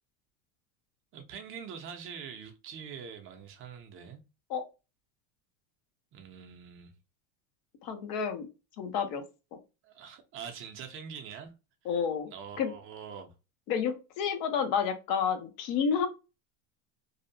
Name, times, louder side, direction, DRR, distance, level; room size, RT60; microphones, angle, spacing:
voice 1, 1.1-4.2 6.1-6.9 9.8-11.5 11.9-12.0 12.3-13.3, right 7 dB, 35° right, 0.5 m, -44 dB
voice 2, 7.8-8.5 8.8-9.2 11.9-12.3 12.6-12.7 13.7-16.1, left 7 dB, 55° left, 0.7 m, -30 dB
2.6 x 2.1 x 2.6 m
supercardioid pair, 130°, 38 cm